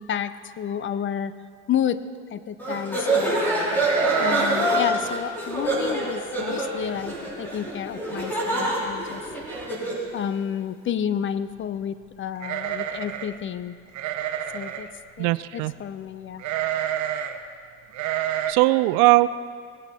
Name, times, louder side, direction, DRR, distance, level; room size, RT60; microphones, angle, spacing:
voice 1, 0.0-1.3 1.7-2.0 2.3-3.4 4.2-9.2 10.1-13.8 14.5-14.9 15.2-16.4, left 9 dB, 35° left, 14 dB, 0.6 m, -30 dB
sound 1, 2.6-10.1, right 1 dB, 5° left, 4.1 m, -26 dB
sound 2, 3.8-4.8 5.0-5.1 5.6-5.9 6.4-6.5 6.8-7.3 7.7-7.8 8.9-9.0 9.3-9.7 12.4-13.4 13.9-14.9 16.4-17.4 17.9-18.5, right 11 dB, 55° right, 1.0 m, -29 dB
voice 2, 15.2-15.7 18.5-19.3, right 20 dB, 80° right, 17 dB, 0.5 m, -19 dB
19.5 x 8.8 x 4.3 m, 2.1 s
supercardioid pair, 95°, 34 cm